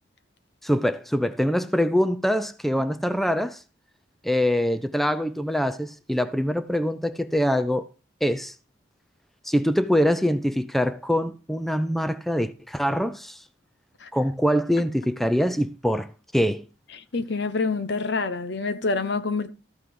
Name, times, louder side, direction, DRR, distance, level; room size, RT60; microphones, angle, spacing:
voice 1, 0.6-3.6 4.2-7.9 8.2-8.5 9.4-13.4 14.1-16.7, equal, ahead, 0.5 m, -24 dB
voice 2, 17.1-19.5, left 3 dB, 60° left, 0.9 m, -26 dB
13.5 x 5.7 x 4.8 m
head